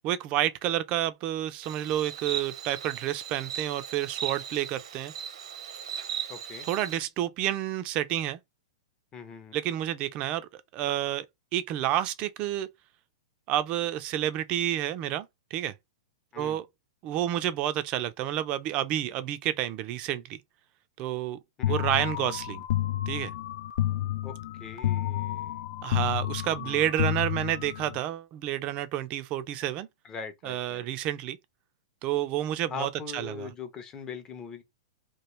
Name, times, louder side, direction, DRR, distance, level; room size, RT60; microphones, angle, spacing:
voice 1, 0.0-5.1 6.7-8.4 9.5-11.3 11.5-12.7 13.5-15.7 16.4-16.7 17.0-20.4 21.0-21.4 21.7-22.7 23.1-23.3 25.8-29.9 30.4-31.4 32.0-33.5, right 12 dB, 35° right, 0.5 m, -30 dB
Insect, 1.6-7.0, right 9 dB, 75° right, 0.8 m, -38 dB
voice 2, 6.3-6.7 9.1-9.6 16.3-16.6 21.6-21.8 24.2-25.6 26.6-27.0 30.0-30.9 32.7-34.6, left 5 dB, 20° left, 0.7 m, -41 dB
sound 1, 21.6-28.0, left 13 dB, 60° left, 0.4 m, -30 dB
3.0 x 2.3 x 3.0 m
hypercardioid pair, 145°, 4 cm